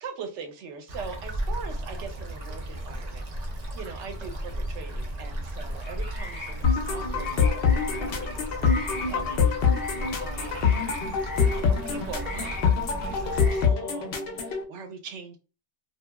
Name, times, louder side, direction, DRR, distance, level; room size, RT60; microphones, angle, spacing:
voice 1, 0.0-9.5 10.2-10.9 11.5-15.4, right 5 dB, 85° right, 5 dB, 0.9 m, -42 dB
sound 1, 0.9-13.7, right 1 dB, 50° right, 0.5 m, -35 dB
sound 2, 5.6-13.7, left 1 dB, 10° left, 1.2 m, -39 dB
sound 3, 6.6-14.6, left 6 dB, 65° left, 0.8 m, -25 dB
2.9 x 2.3 x 2.2 m, 0.34 s
omnidirectional pair, 1.2 m